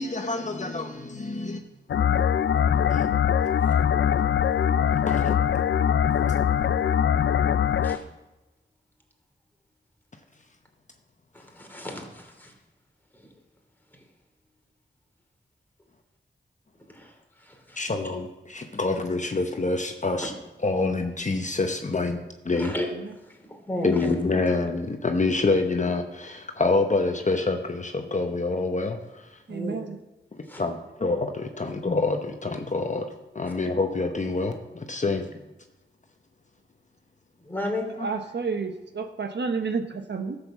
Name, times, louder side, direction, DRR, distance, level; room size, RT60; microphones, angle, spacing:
voice 1, 0.0-1.6 2.9-3.1 4.9-5.4 17.8-20.3 20.6-22.2 22.4-22.7 23.8-29.4 30.4-35.3, left 3 dB, 40° left, 5 dB, 1.0 m, -27 dB
sound 1, 1.9-8.0, left 8 dB, 80° left, 0.5 m, -22 dB
voice 2, 11.3-12.5 13.1-13.3 13.9-14.0 16.9-17.9 20.2-20.3 22.5-22.9 23.2-24.1 29.5-29.8 30.4-30.6 31.6-31.7 37.4-37.9, left 1 dB, 10° left, 1 dB, 2.9 m, -35 dB
voice 3, 29.5-30.0 38.0-40.4, right 5 dB, 65° right, 6 dB, 1.1 m, -30 dB
12.0 x 6.8 x 7.2 m, 1.0 s
wide cardioid pair, 65°, 19 cm